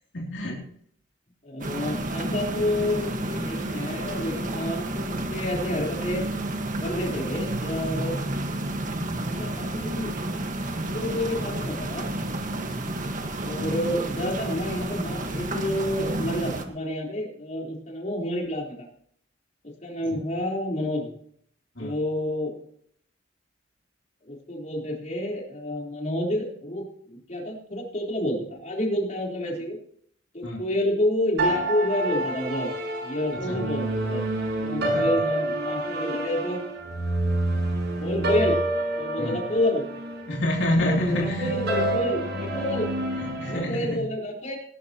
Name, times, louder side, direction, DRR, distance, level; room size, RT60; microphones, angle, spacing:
voice 1, 0.1-0.7 13.5-13.7 20.1-20.2 21.7-21.9 30.4-30.7 33.3-33.6 34.8-35.1 39.2-39.4 40.3-41.6 43.1-44.1, left 1 dB, 75° left, -2 dB, 2.8 m, -28 dB
voice 2, 1.4-6.2 6.8-8.2 9.3-10.1 10.9-12.0 13.4-18.9 19.8-21.1 21.8-22.5 24.2-29.8 30.3-32.7 33.0-34.2 34.6-36.6 37.9-38.6 39.0-39.9 40.8-42.2 42.5-42.9 43.5-44.6, left 1 dB, 40° left, -1 dB, 3.9 m, -29 dB
sound 1, 1.6-16.7, right 1 dB, 45° right, 1.5 m, -30 dB
sound 2, 31.4-43.6, right 1 dB, 65° right, 6.0 m, -28 dB
19.5 x 12.0 x 3.0 m, 0.64 s
head